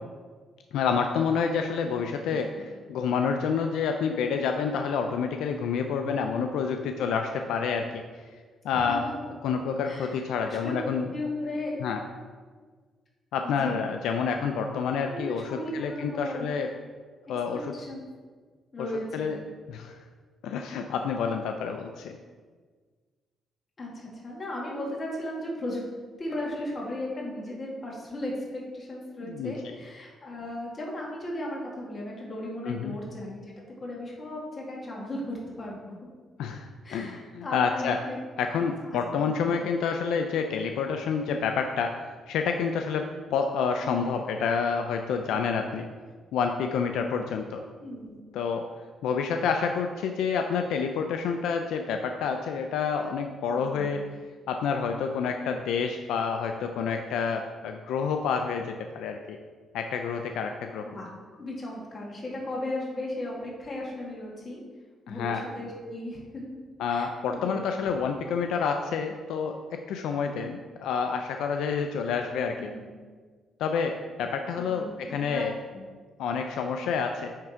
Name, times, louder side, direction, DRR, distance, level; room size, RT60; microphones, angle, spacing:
voice 1, 0.7-2.5 2.9-8.0 8.6-9.1 9.4-11.1 11.8-12.0 13.3-16.7 17.3-17.7 19.1-19.4 19.7-20.0 20.4-22.2 29.2-29.5 32.6-33.0 36.4-38.0 38.4-42.0 42.3-45.9 46.3-47.6 48.3-48.6 49.0-54.0 54.5-59.4 59.7-60.9 65.1-65.4 66.8-72.7 73.6-75.5 76.2-77.3, left 6 dB, 85° left, 5 dB, 0.4 m, -28 dB
voice 2, 2.3-2.6 6.8-6.9 8.7-9.1 9.8-11.8 13.4-13.8 15.0-16.5 17.5-18.0 18.7-19.3 23.8-25.8 26.2-33.4 33.8-36.0 36.8-38.2 38.8-39.6 43.8-44.1 47.8-48.2 53.5-53.9 60.8-61.1 61.4-64.6 65.1-66.6 66.9-67.8 72.6-72.9 74.6-75.4 75.7-75.8, left 1 dB, 35° left, -3 dB, 2.2 m, -36 dB
9.2 x 3.6 x 4.6 m, 1.5 s
cardioid pair, 90°, 0 cm